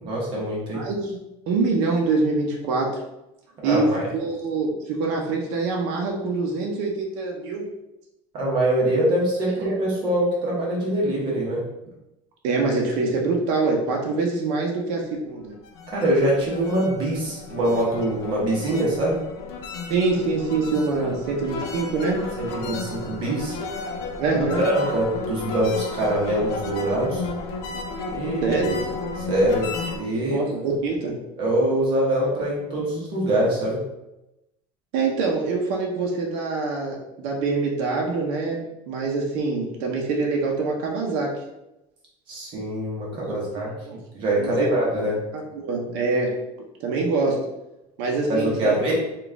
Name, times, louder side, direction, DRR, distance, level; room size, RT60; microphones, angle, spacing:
voice 1, 0.0-0.8 3.6-4.1 8.3-11.6 15.9-19.2 22.4-23.6 24.3-24.4 24.6-27.2 28.1-28.6 29.3-29.7 29.9-30.4 31.4-33.8 42.3-43.7 44.1-45.1 48.3-48.9, right 1 dB, 35° right, -4 dB, 1.0 m, -24 dB
voice 2, 0.7-3.0 3.6-7.7 9.6-9.8 12.4-15.6 19.9-22.2 24.2-24.7 28.4-28.9 30.3-31.2 34.9-41.3 43.3-44.0 44.4-44.7 45.3-47.4 48.0-48.9, right 3 dB, 65° right, -1 dB, 0.7 m, -25 dB
sound 1, 15.5-30.0, left 3 dB, 85° left, 0.6 m, -33 dB
3.9 x 2.4 x 3.5 m, 0.92 s
cardioid pair, 175°, 14 cm